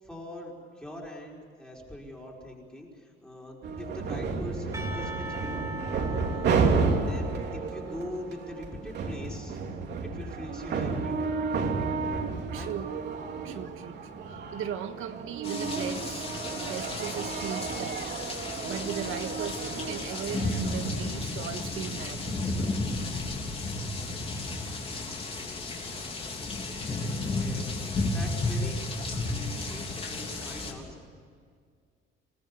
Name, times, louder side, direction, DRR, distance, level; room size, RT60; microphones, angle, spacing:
voice 1, 0.0-5.7 6.1-9.6 10.0-11.2 12.5-12.7 19.6-19.8 27.3-27.8 28.1-28.8 29.2-31.0, left 1 dB, 5° left, -2 dB, 5.0 m, -42 dB
sound 1, 3.6-20.9, right 4 dB, 55° right, 3.1 m, -32 dB
Percussion / Church bell, 4.7-9.8, right 2 dB, 15° right, 2.3 m, -42 dB
voice 2, 12.5-12.9 13.4-18.3 18.6-22.5, right 9 dB, 80° right, 7 dB, 1.5 m, -38 dB
sound 2, 15.4-30.7, left 2 dB, 25° left, 3.4 m, -33 dB
27.0 x 18.5 x 8.4 m, 2.1 s
cardioid pair, 165°, 21 cm